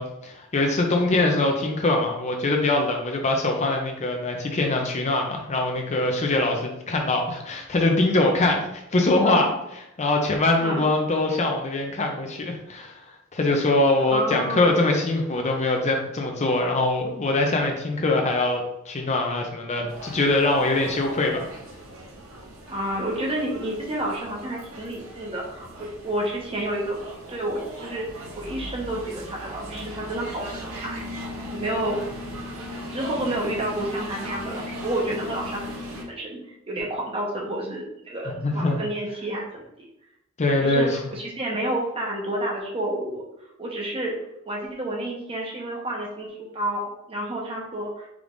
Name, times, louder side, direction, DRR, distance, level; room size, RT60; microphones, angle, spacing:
voice 1, 0.0-13.0 13.3-21.5 38.3-38.8 40.4-41.0, left 2 dB, 30° left, 2 dB, 0.5 m, -23 dB
voice 2, 14.1-14.7 22.7-27.0 27.3-30.5 30.7-31.0 31.5-32.0 32.9-36.4 36.7-39.6 40.6-43.2 43.6-44.2 44.4-48.1, right 1 dB, 25° right, -2 dB, 0.9 m, -30 dB
sound 1, 19.9-36.0, equal, 65° right, 0.8 m, -38 dB
4.7 x 3.4 x 2.5 m, 0.82 s
head